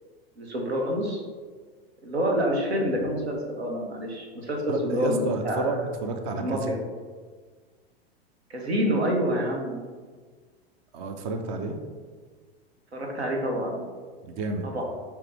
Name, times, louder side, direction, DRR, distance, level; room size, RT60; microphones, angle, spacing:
voice 1, 0.4-1.2 2.0-5.6 6.4-6.8 8.5-9.8 12.9-13.9 14.6-14.8, equal, 85° right, 0 dB, 1.0 m, -27 dB
voice 2, 4.7-6.8 10.9-11.8 14.2-14.7, right 3 dB, 50° right, 5 dB, 0.7 m, -30 dB
4.8 x 3.0 x 3.5 m, 1.5 s
hypercardioid pair, 100°, 31 cm